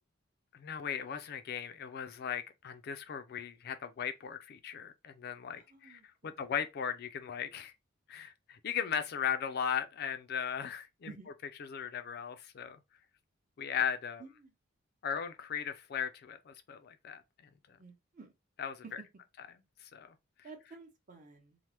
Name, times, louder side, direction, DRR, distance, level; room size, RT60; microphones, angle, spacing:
voice 1, 0.5-7.7 8.1-11.1 11.7-12.8 13.6-14.2 15.0-17.2 18.6-18.8 19.9-20.1, left 8 dB, 55° left, 0.4 m, -37 dB
voice 2, 5.5-6.5 11.0-11.3 14.2-14.5 17.8-18.3 20.4-21.6, right 4 dB, 40° right, 0.8 m, -53 dB
3.2 x 2.0 x 2.8 m
head